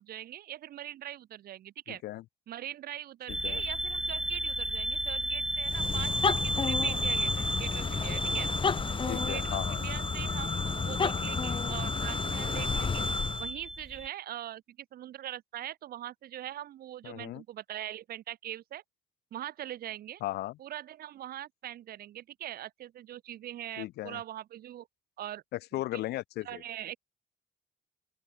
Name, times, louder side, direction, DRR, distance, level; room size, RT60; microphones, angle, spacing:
voice 1, 0.0-2.0 2.5-8.5 9.0-13.0 13.4-18.8 19.3-20.2 20.6-24.9 25.2-25.4 26.4-27.0, right 12 dB, 65° right, 3.4 m, -42 dB
voice 2, 1.9-2.2 3.3-3.6 9.1-9.8 17.0-17.4 20.2-20.6 23.8-24.2 25.5-26.6, left 16 dB, 75° left, 1.5 m, -36 dB
sound 1, 3.3-14.1, right 1 dB, 5° right, 1.1 m, -34 dB
sound 2, 5.6-13.5, left 5 dB, 30° left, 3.7 m, -32 dB
open air
cardioid pair, 110°, 17 cm